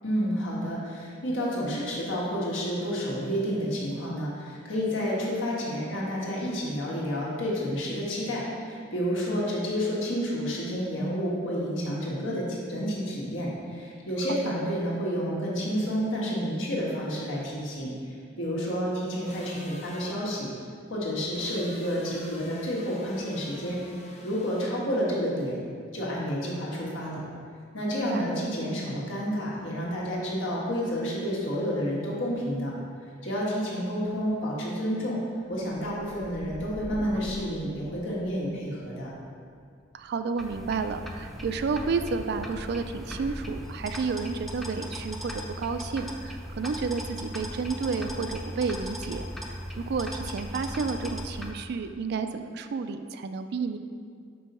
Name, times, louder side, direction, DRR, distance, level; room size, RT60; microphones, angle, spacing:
voice 1, 0.0-17.9 18.4-20.5 20.9-23.8 24.2-25.6 25.9-27.2 27.7-32.7 33.2-35.2 35.5-39.1, equal, 80° left, -5 dB, 1.5 m, -30 dB
sound 1, 19.2-20.1 21.3-24.7, left 2 dB, 35° left, 0.7 m, -48 dB
voice 2, 27.9-28.3 39.9-49.3 49.8-53.8, right 4 dB, 60° right, 9 dB, 0.3 m, -31 dB
sound 2, 35.5-43.5 43.9-44.4, right 1 dB, 85° right, 0.8 m, -48 dB
sound 3, 40.4-51.5, equal, ahead, 0.5 m, -38 dB
5.4 x 3.9 x 5.4 m, 2.1 s
head